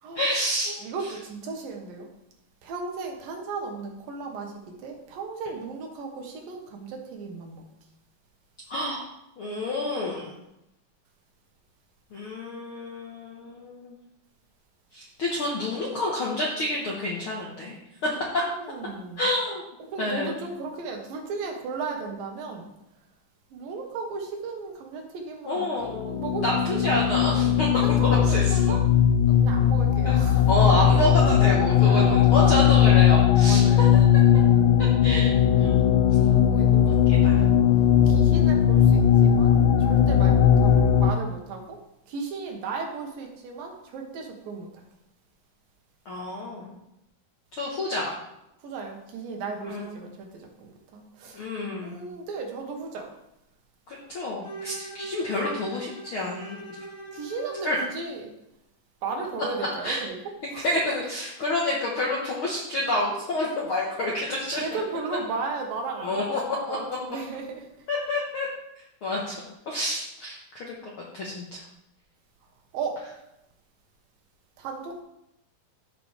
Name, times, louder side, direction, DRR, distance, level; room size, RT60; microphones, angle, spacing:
voice 1, 0.1-0.7 8.7-9.0 9.4-10.3 12.1-14.0 14.9-17.8 19.2-19.6 20.0-20.4 25.5-28.8 30.0-30.2 30.5-33.9 34.8-35.3 35.6-35.8 36.8-37.4 46.0-46.7 47.5-48.1 49.7-49.9 51.3-52.0 53.9-56.6 57.6-57.7 59.8-60.0 60.6-64.8 66.0-66.8 67.9-68.5 69.0-70.7 71.1-71.6, left 1 dB, 65° left, -4 dB, 1.3 m, -28 dB
voice 2, 0.8-2.1 2.6-7.6 18.0-19.3 19.9-22.7 23.5-26.9 27.3-28.8 29.3-30.5 31.8-33.1 33.5-33.9 36.2-37.5 38.0-41.8 42.1-44.9 48.6-51.4 51.8-53.1 57.1-58.3 59.0-60.2 60.5-60.7 64.5-66.4 66.7-67.9 72.7-73.1 74.6-75.0, right 4 dB, 75° right, 2 dB, 2.9 m, -35 dB
sound 1, 25.9-41.1, left 9 dB, 80° left, 2.1 m, -19 dB
Bowed string instrument, 54.4-57.8, right 2 dB, 50° left, 3.9 m, -40 dB
13.5 x 5.9 x 3.3 m, 0.84 s
omnidirectional pair, 4.2 m